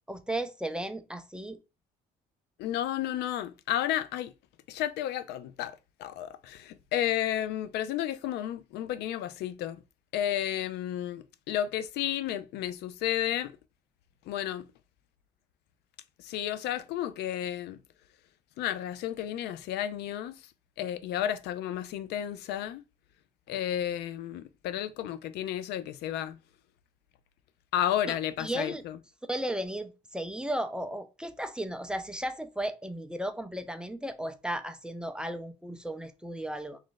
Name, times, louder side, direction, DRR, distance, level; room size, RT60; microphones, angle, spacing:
voice 1, 0.1-1.6 28.4-28.8 29.3-36.8, right 1 dB, 5° right, 0.4 m, -35 dB
voice 2, 2.6-4.3 4.7-9.8 10.1-13.5 14.3-14.7 16.2-17.8 18.6-20.5 20.8-22.8 23.5-26.4 27.7-29.0, left 11 dB, 75° left, 0.4 m, -32 dB
3.0 x 2.5 x 3.8 m
cardioid pair, 110°, 17 cm